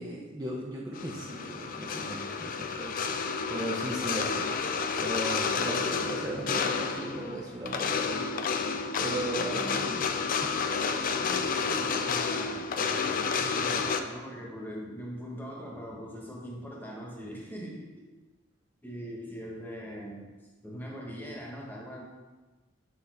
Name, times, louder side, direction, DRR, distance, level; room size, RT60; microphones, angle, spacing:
voice 1, 0.0-3.2 3.5-4.5 5.0-8.2 8.6-8.7 9.0-10.1 10.4-10.6 12.8-13.0, right 1 dB, 20° right, -3 dB, 0.6 m, -37 dB
sound 1, 0.9-14.0, left 5 dB, 45° left, 0.4 m, -30 dB
voice 2, 11.1-18.0 18.8-20.3 20.6-22.0, equal, 10° left, -2 dB, 1.2 m, -41 dB
6.3 x 5.3 x 3.4 m, 1.2 s
head